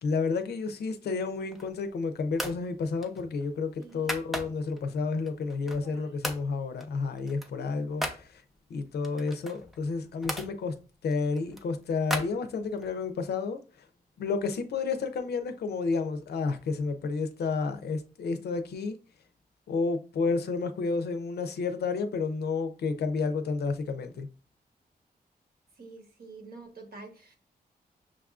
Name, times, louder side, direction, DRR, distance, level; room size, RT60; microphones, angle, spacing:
voice 1, 0.0-8.4 8.7-10.7 11.0-13.9 14.2-19.0 19.7-24.3, left 4 dB, 85° left, 0.5 m, -31 dB
sound 1, 1.3-1.9 2.3-2.6 3.0-4.8 5.3-5.9 6.2-6.5 6.8-8.2 9.0-10.5 11.1-12.9, equal, ahead, 0.5 m, -37 dB
voice 2, 3.8-4.4 5.8-6.2 7.5-8.1 25.8-27.4, right 3 dB, 70° right, 1.1 m, -48 dB
6.0 x 2.4 x 2.4 m
wide cardioid pair, 95°, 16 cm